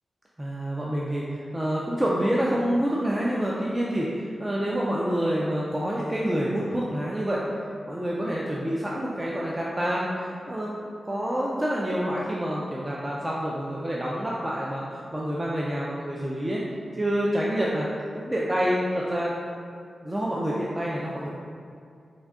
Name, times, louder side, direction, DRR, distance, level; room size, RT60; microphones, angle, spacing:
voice 1, 0.4-7.4 7.9-10.8 11.0-16.6 16.9-17.9 18.1-19.3 20.0-21.3, equal, 15° right, -5 dB, 0.3 m, -27 dB
3.6 x 2.6 x 3.5 m, 2.3 s
wide cardioid pair, 135°, 0 cm